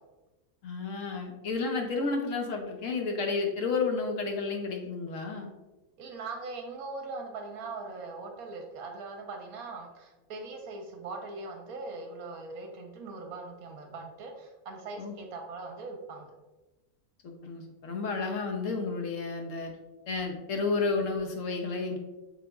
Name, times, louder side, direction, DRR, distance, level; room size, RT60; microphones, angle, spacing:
voice 1, 0.6-5.5 15.0-15.1 17.2-19.7 20.1-22.0, left 4 dB, 70° left, 2 dB, 0.8 m, -31 dB
voice 2, 6.0-16.3, right 3 dB, 75° right, 2 dB, 1.0 m, -41 dB
3.9 x 3.5 x 2.2 m, 1.1 s
omnidirectional pair, 1.6 m